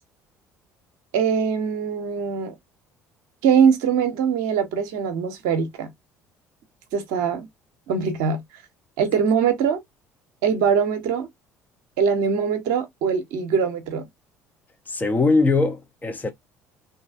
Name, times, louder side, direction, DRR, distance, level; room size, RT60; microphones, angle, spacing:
voice 1, 1.1-2.5 3.4-5.9 6.9-7.5 7.9-8.4 9.0-9.8 10.4-11.3 12.0-14.0, right 6 dB, 60° right, 0.8 m, -22 dB
voice 2, 14.9-16.3, left 3 dB, 20° left, 0.8 m, -21 dB
3.1 x 2.7 x 2.4 m
figure-of-eight pair, 55°, 8 cm